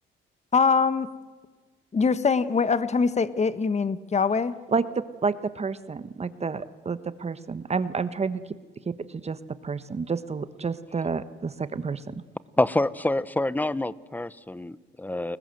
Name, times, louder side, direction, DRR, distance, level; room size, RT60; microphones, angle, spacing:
voice 1, 0.5-1.1 1.9-4.5, left 5 dB, 35° left, 13 dB, 1.6 m, -23 dB
voice 2, 4.7-8.5 8.8-12.2, right 5 dB, 30° right, 13 dB, 1.2 m, -30 dB
voice 3, 12.6-15.4, left 2 dB, 10° left, 17 dB, 1.0 m, -27 dB
30.0 x 21.0 x 7.9 m, 1.3 s
cardioid pair, 90°, 20 cm